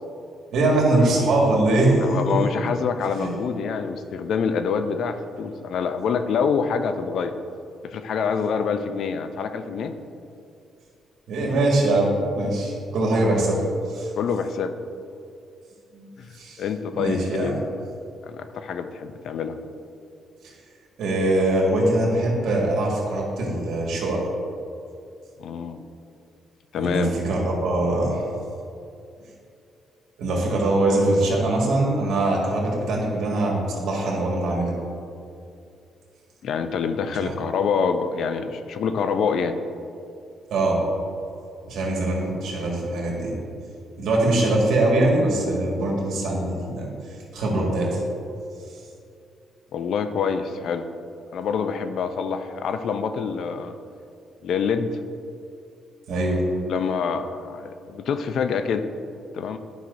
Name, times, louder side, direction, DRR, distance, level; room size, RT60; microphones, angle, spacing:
voice 1, 0.5-2.4 3.2-3.3 11.3-14.1 15.9-16.1 16.3-16.6 16.9-17.5 20.4-20.5 21.0-24.2 26.8-28.3 30.2-34.7 37.2-37.3 40.5-40.8 41.7-43.4 44.0-46.9 47.3-48.0 56.1-56.4, right 2 dB, 75° right, -2 dB, 1.8 m, -22 dB
voice 2, 2.0-7.3 7.9-9.9 14.2-14.7 16.2-16.3 16.6-17.6 18.3-19.6 25.4-25.9 26.7-27.1 36.4-39.6 49.7-50.9 51.3-53.8 54.4-54.9 56.7-58.9 59.3-59.6, left 6 dB, 70° left, 9 dB, 0.4 m, -26 dB
10.5 x 5.5 x 2.6 m, 2.5 s
cardioid pair, 90°, 0 cm